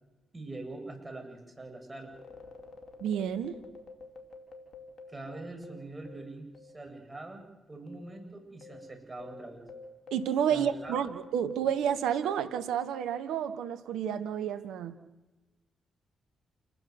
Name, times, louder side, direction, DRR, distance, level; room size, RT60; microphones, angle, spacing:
voice 1, 0.3-2.1 5.1-9.6 10.5-11.0, right 2 dB, 25° right, 4 dB, 7.6 m, -43 dB
sound 1, 2.0-6.9 7.1-7.2 7.9-12.6, left 3 dB, 60° left, 5.1 m, -50 dB
voice 2, 3.0-3.6 10.1-14.9, right 8 dB, 75° right, 9 dB, 1.4 m, -30 dB
28.5 x 12.5 x 9.7 m, 1.1 s
hypercardioid pair, 45°, 0 cm